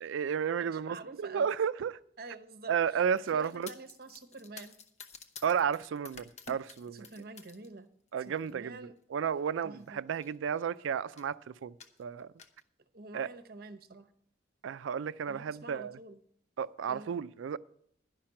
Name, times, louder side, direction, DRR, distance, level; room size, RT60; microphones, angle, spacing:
voice 1, 0.0-2.0 2.7-3.7 5.4-7.1 8.1-8.8 9.1-11.7 12.0-12.3 13.1-13.3 14.6-16.0 16.6-17.6, right 7 dB, 85° right, 0.4 m, -32 dB
voice 2, 0.6-1.5 2.2-3.0 3.3-4.8 6.9-7.9 8.2-9.0 9.6-10.0 12.9-14.1 15.2-16.2 16.9-17.1, right 3 dB, 50° right, 0.8 m, -47 dB
sound 1, 3.1-7.7 8.1-8.5 9.4-9.5 9.8-9.9 10.1-10.7 11.2-11.4 11.8-12.6, left 5 dB, 35° left, 0.8 m, -51 dB
11.0 x 5.8 x 8.7 m
head